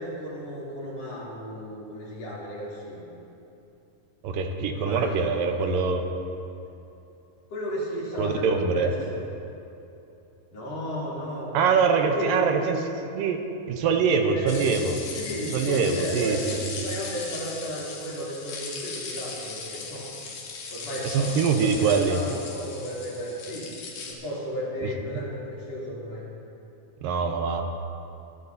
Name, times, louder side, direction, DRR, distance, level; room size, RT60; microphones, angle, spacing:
voice 1, 0.0-3.1 4.7-5.7 7.5-9.2 10.5-11.6 12.0-12.7 14.1-14.9 15.2-16.4 16.8-20.0 20.7-23.7 24.1-26.2, equal, 50° left, -8 dB, 4.1 m, -34 dB
voice 2, 4.2-6.0 8.2-8.9 11.5-13.4 13.7-15.0 15.5-16.8 21.0-22.2 27.0-27.6, right 5 dB, 85° right, 4 dB, 2.6 m, -24 dB
sound 1, 14.5-24.1, left 4 dB, 65° left, 3.0 m, -38 dB
22.5 x 12.0 x 2.8 m, 2.9 s
omnidirectional pair, 4.0 m